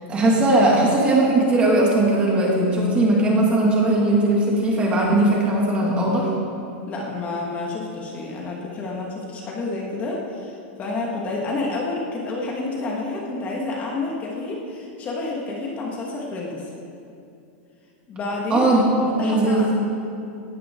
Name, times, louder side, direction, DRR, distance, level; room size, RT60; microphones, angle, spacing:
voice 1, 0.1-6.3 18.5-19.8, right 1 dB, 20° right, -2 dB, 2.4 m, -19 dB
voice 2, 6.9-16.7 18.1-18.7 19.2-19.8, left 3 dB, 25° left, -2 dB, 1.9 m, -29 dB
17.5 x 13.0 x 3.9 m, 2.6 s
supercardioid pair, 160°, 6 cm